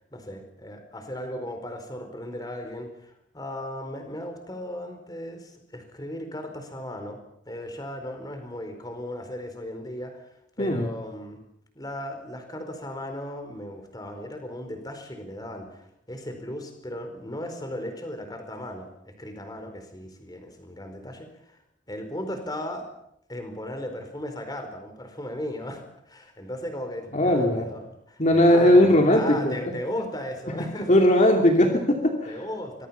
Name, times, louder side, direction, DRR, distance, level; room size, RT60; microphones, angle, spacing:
voice 1, 0.1-7.2 7.5-10.3 10.6-11.4 11.7-21.6 21.9-22.9 23.3-30.9 32.2-32.9, left 1 dB, 20° left, 6 dB, 4.5 m, -36 dB
voice 2, 10.6-10.9 27.1-27.7 28.2-29.6 30.9-32.4, left 1 dB, 40° left, 2 dB, 2.7 m, -19 dB
25.5 x 23.0 x 5.8 m, 0.74 s
head